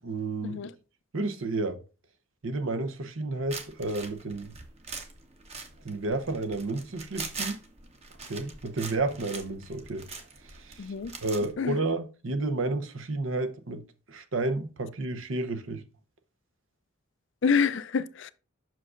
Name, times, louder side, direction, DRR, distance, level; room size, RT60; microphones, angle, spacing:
voice 1, 0.0-0.6 1.1-1.8 2.4-4.5 5.8-7.6 8.3-10.1 10.4-10.9 11.2-13.8 14.1-15.8, right 2 dB, 70° right, 0.8 m, -31 dB
sound 1, 3.5-11.5, right 4 dB, 30° right, 0.9 m, -42 dB
voice 2, 10.8-11.1 11.6-11.8 17.4-18.3, left 6 dB, 60° left, 0.4 m, -27 dB
7.4 x 6.1 x 2.5 m
head